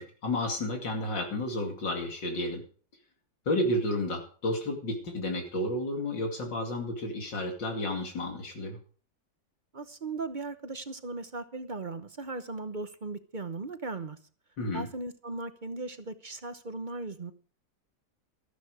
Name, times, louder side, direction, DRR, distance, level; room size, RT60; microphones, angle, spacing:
voice 1, 0.0-2.6 3.5-8.8 14.6-14.9, left 1 dB, 80° left, 2 dB, 3.2 m, -31 dB
voice 2, 9.7-14.2 14.7-17.3, right 3 dB, 35° right, 10 dB, 0.8 m, -37 dB
14.0 x 13.0 x 4.9 m, 0.43 s
omnidirectional pair, 1.9 m